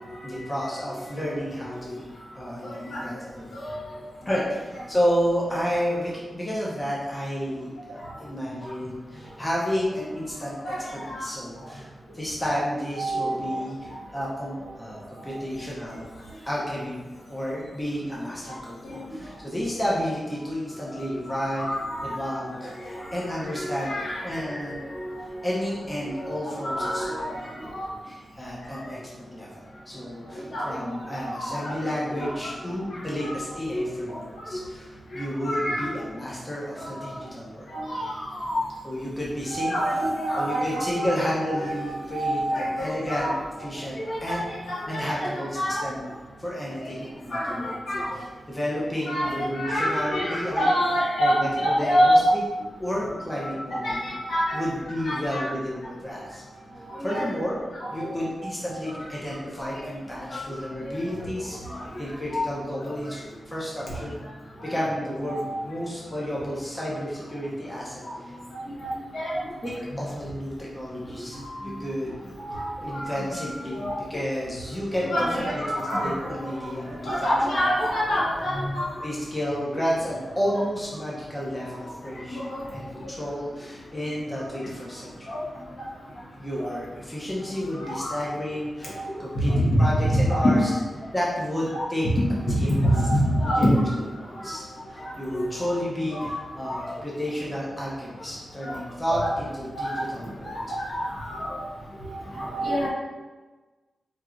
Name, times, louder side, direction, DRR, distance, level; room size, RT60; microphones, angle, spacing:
voice 1, 0.2-2.1 2.3-3.5 4.2-10.7 11.2-11.9 12.1-16.0 16.4-17.0 17.3-21.7 22.0-23.9 24.2-24.8 25.4-27.7 28.0-29.0 29.3-37.7 38.8-39.7 40.3-43.3 43.6-44.5 44.9-46.0 46.4-47.7 48.5-50.7 51.2-52.4 52.8-54.1 54.5-56.4 57.0-57.6 57.9-63.2 63.5-64.2 64.6-68.3 69.6-71.4 71.8-72.2 72.8-73.8 74.1-75.3 75.5-77.6 79.0-82.4 82.7-85.3 86.4-90.7 91.1-92.1 92.6-92.9 93.4-93.8 94.1-100.5, equal, 15° left, -6 dB, 0.6 m, -31 dB
voice 2, 12.9-13.5 18.9-19.0 20.9-21.0 21.3-22.2 22.9-25.1 26.2-27.4 27.7-27.8 28.7-28.8 30.5-30.7 31.2-31.7 32.2-32.3 32.9-33.3 33.7-34.2 35.1-35.9 36.8-37.1 37.7-38.6 39.5-41.2 41.5-43.3 44.1-45.8 47.3-48.1 49.1-52.2 53.3-54.7 55.0-55.5 56.9-57.3 57.8-58.1 60.3-60.4 60.8-60.9 61.7-61.8 62.3-62.5 64.6-64.7 65.2-65.6 68.8-69.3 71.3-71.6 72.5-74.0 75.0-76.7 77.0-78.9 82.3-82.6 85.3-85.4 87.8-88.2 89.0-89.1 89.4-89.6 90.3-90.7 91.7-91.8 92.6-93.8 95.3-95.7 96.2-96.3 96.6-96.9 98.6-98.8 99.1-99.3 99.7-100.0 100.4-101.6 102.0-102.9, equal, 70° left, -7 dB, 1.2 m, -27 dB
4.6 x 2.8 x 2.4 m, 1.3 s
wide cardioid pair, 165°, 0 cm